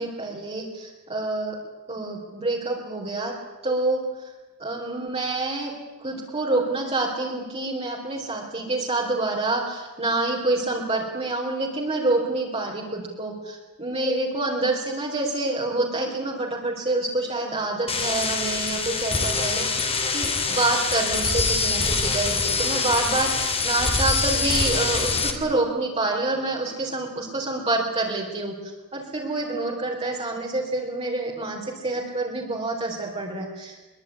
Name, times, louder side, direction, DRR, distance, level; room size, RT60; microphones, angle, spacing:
voice 1, 0.0-1.6 1.9-3.3 3.6-4.0 4.6-5.7 6.0-33.8, right 2 dB, 30° right, -3 dB, 4.3 m, -27 dB
sound 1, 17.9-25.3, left 4 dB, 25° left, 3.1 m, -24 dB
23.0 x 23.0 x 9.8 m, 1.2 s
head